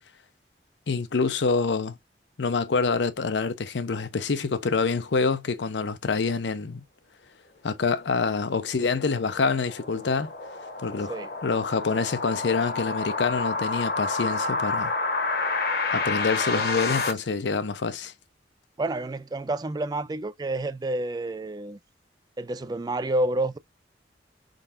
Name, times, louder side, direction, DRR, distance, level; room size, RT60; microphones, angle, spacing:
voice 1, 0.9-2.0 2.4-6.8 7.6-10.3 10.8-11.1 11.4-14.9 15.9-18.1, left 4 dB, 85° left, 0.6 m, -26 dB
sound 1, 8.4-17.1, left 3 dB, 60° left, 1.0 m, -29 dB
voice 2, 16.4-16.9 18.8-21.8 22.4-23.6, right 2 dB, 20° right, 0.4 m, -29 dB
4.4 x 3.8 x 2.5 m
head